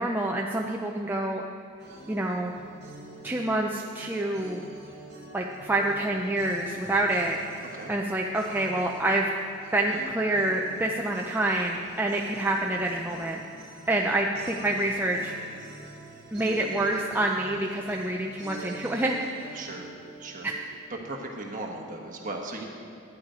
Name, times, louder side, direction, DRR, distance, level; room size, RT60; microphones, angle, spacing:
voice 1, 0.0-1.5 2.1-2.5 3.2-4.6 5.3-7.4 7.9-9.3 9.7-13.4 13.9-15.3 16.3-19.6 20.4-20.5, right 1 dB, 10° right, 0 dB, 0.4 m, -27 dB
sound 1, 1.8-20.9, right 2 dB, 55° right, 1.8 m, -45 dB
voice 2, 19.5-20.5 20.9-22.6, right 2 dB, 40° right, 1 dB, 1.3 m, -37 dB
11.5 x 9.0 x 5.0 m, 2.6 s
head